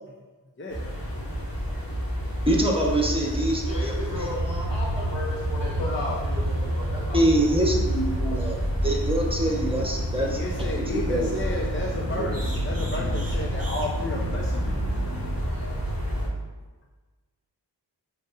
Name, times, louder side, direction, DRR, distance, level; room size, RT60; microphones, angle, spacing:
voice 1, 0.6-1.1 1.4-1.5 5.8-6.2 10.1-15.5, left 1 dB, 30° left, -1 dB, 0.7 m, -33 dB
sound 1, 0.7-16.3, equal, 55° left, 1.9 m, -29 dB
voice 2, 2.5-3.9 7.1-10.4 10.8-11.4 12.1-12.2, right 1 dB, 10° right, -1 dB, 1.2 m, -25 dB
voice 3, 3.6-7.6, left 1 dB, 80° left, -4 dB, 1.6 m, -35 dB
sound 2, 4.1-15.4, equal, 35° right, 1.2 m, -33 dB
9.6 x 3.8 x 2.6 m, 1.3 s
cardioid pair, 45°, 43 cm